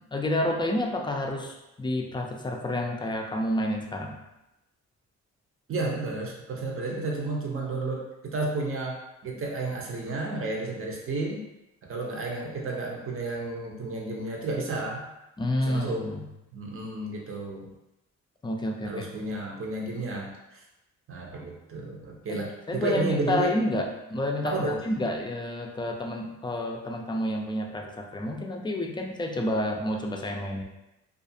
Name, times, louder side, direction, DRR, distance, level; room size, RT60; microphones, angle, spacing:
voice 1, 0.0-4.2 15.4-16.3 18.4-19.0 22.3-30.6, left 1 dB, 15° left, 1 dB, 0.4 m, -29 dB
voice 2, 5.7-9.0 9.2-11.4 11.8-15.0 15.7-16.1 16.5-17.7 18.8-20.6 21.1-23.5 24.4-24.8, right 2 dB, 45° right, -1 dB, 0.7 m, -32 dB
2.4 x 2.4 x 2.7 m, 0.92 s
cardioid pair, 85°, 30 cm